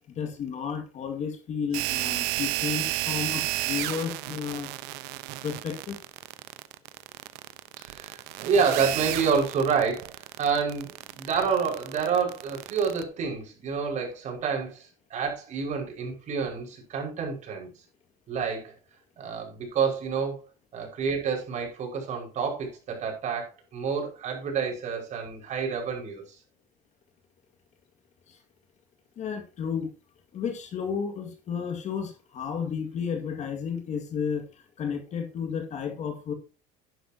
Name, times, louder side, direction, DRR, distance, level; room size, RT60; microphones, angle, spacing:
voice 1, 0.2-4.7 5.4-6.0 28.3-28.4 29.2-29.9 30.3-36.3, left 6 dB, 45° left, 2.0 m, -32 dB
sound 1, 1.7-13.0, right 18 dB, 80° right, 0.9 m, -32 dB
voice 2, 7.8-10.1 10.4-17.7 18.3-18.7 19.2-20.4 20.7-26.2, right 6 dB, 45° right, 5.4 m, -28 dB
11.5 x 10.0 x 2.9 m
cardioid pair, 130°, 17 cm